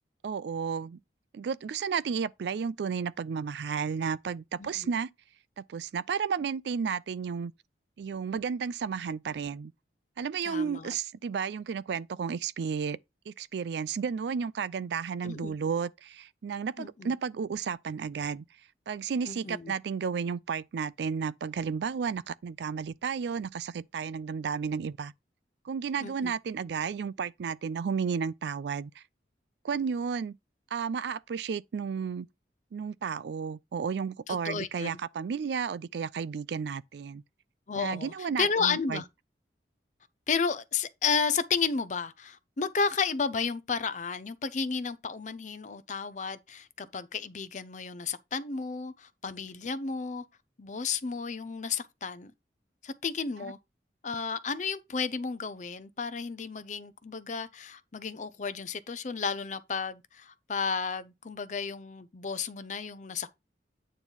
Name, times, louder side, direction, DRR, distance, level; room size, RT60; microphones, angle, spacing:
voice 1, 0.2-1.0 1.3-5.1 5.6-7.5 8.0-9.7 10.2-13.0 13.3-18.4 18.9-25.1 25.6-29.0 29.6-30.4 30.7-32.3 32.7-37.2 37.7-39.0, right 6 dB, 70° right, 0.3 m, -32 dB
voice 2, 10.4-10.9 15.2-15.5 16.8-17.1 19.3-19.7 26.0-26.3 34.3-35.0 37.7-38.1 38.4-39.0 40.3-50.2 50.6-52.3 52.8-53.6 54.0-63.3, left 5 dB, 45° left, 0.5 m, -32 dB
9.0 x 3.1 x 5.3 m
head